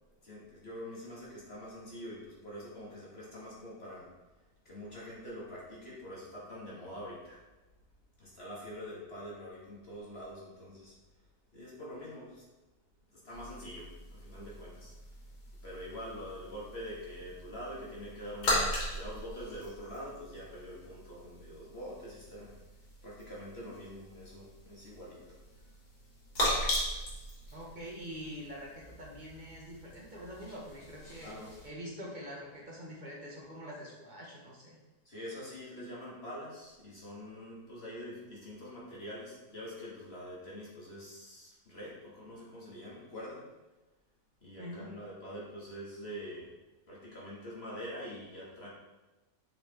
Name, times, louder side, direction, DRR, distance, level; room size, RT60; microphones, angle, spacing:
voice 1, 0.2-4.1 4.6-7.4 8.2-10.9 11.5-12.4 13.1-14.9 15.6-22.5 23.0-25.4 27.5-27.6 31.2-31.5 35.0-43.5 44.4-46.5 46.9-48.7, equal, 35° left, -6 dB, 2.7 m, -45 dB
sound 1, 13.3-31.7, left 1 dB, 90° left, 3.4 m, -39 dB
voice 2, 27.5-31.3 31.6-34.8 44.6-44.9, equal, 30° right, -3 dB, 1.6 m, -45 dB
7.3 x 5.2 x 4.7 m, 1.1 s
omnidirectional pair, 1.9 m